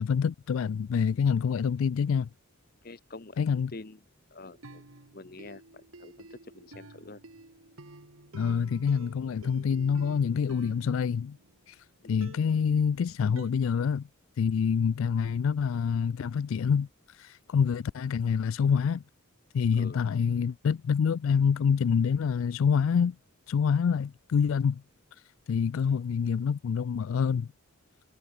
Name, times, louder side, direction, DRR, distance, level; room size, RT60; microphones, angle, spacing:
voice 1, 0.0-2.3 3.4-3.7 8.3-11.4 11.7-14.1 14.4-19.0 19.5-23.2 23.5-24.8 25.5-27.5, left 6 dB, 75° left, 0.3 m, -26 dB
voice 2, 2.8-3.4 3.7-4.0 4.3-4.8 5.1-7.2 12.0-12.3 19.8-20.0, left 2 dB, 45° left, 1.0 m, -46 dB
sound 1, 4.5-11.7 12.2-13.5, right 2 dB, 90° right, 2.2 m, -50 dB
head